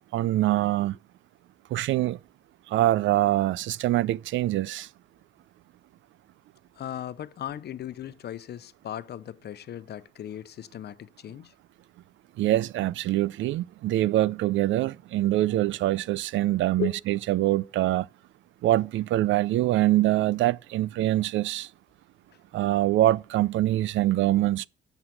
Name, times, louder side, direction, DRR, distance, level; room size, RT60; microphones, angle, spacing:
voice 1, 0.1-1.0 1.7-2.2 2.7-4.9 12.4-18.1 18.6-21.7 22.5-24.7, right 15 dB, 75° right, 0.4 m, -24 dB
voice 2, 6.8-11.5 16.8-17.0, left 11 dB, 55° left, 0.7 m, -37 dB
8.0 x 7.0 x 7.7 m
cardioid pair, 90°, 20 cm